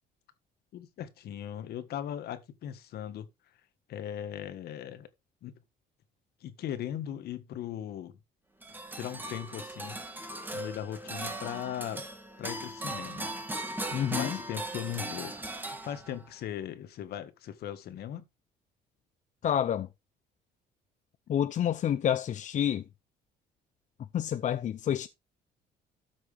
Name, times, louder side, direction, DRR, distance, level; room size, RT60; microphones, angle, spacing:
voice 1, 0.7-3.3 3.9-5.1 5.4-5.6 6.4-8.2 8.9-10.0 10.5-12.0 12.4-13.3 13.6-15.4 15.8-18.2, left 10 dB, 70° left, 1.6 m, -38 dB
sound 1, 8.6-16.3, right 1 dB, 10° right, 1.9 m, -38 dB
voice 2, 13.9-14.4 19.4-19.9 21.3-22.8 24.1-25.1, left 10 dB, 45° left, 0.6 m, -28 dB
13.0 x 6.3 x 3.4 m
cardioid pair, 110°, 17 cm